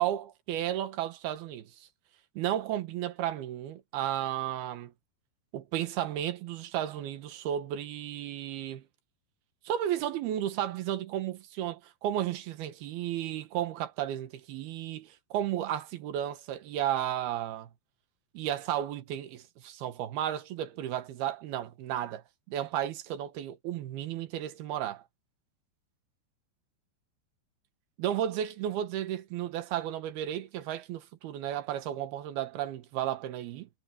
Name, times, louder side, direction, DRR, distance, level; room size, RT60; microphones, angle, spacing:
voice 1, 0.0-1.9 2.4-4.9 5.5-8.8 9.6-17.7 18.3-25.0 28.0-33.7, right 11 dB, 70° right, 3.0 m, -33 dB
omnidirectional pair, 5.1 m